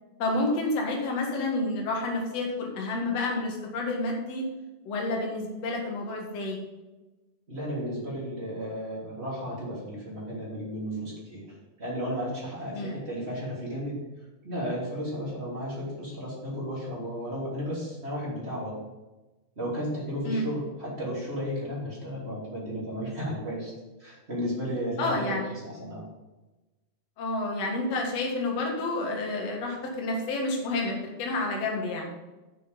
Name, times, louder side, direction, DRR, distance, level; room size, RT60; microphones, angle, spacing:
voice 1, 0.2-4.5 4.8-6.6 12.7-12.9 20.3-20.5 25.0-25.5 27.2-32.2, left 2 dB, 50° left, 0 dB, 2.3 m, -29 dB
voice 2, 7.5-11.4 11.8-14.1 14.4-18.8 19.5-23.7 24.0-26.0, equal, 15° right, -6 dB, 2.8 m, -33 dB
7.7 x 6.7 x 5.2 m, 1.1 s
omnidirectional pair, 4.6 m